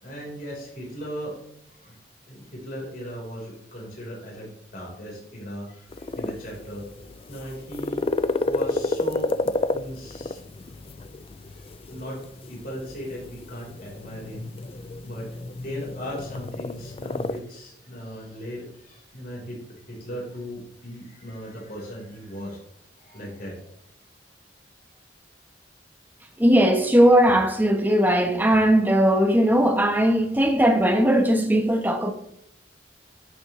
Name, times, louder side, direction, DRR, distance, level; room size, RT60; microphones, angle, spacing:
voice 1, 0.0-1.4 1.7-2.0 2.3-6.8 7.3-8.1 8.4-9.3 9.7-10.4 11.5-14.5 15.0-15.3 15.6-22.6 23.0-23.7, equal, 55° left, 4.4 m, -37 dB
sound 1, 5.9-17.4, left 2 dB, 30° left, 0.4 m, -31 dB
voice 2, 26.4-32.1, equal, 10° right, 1.2 m, -19 dB
12.5 x 7.3 x 3.3 m
head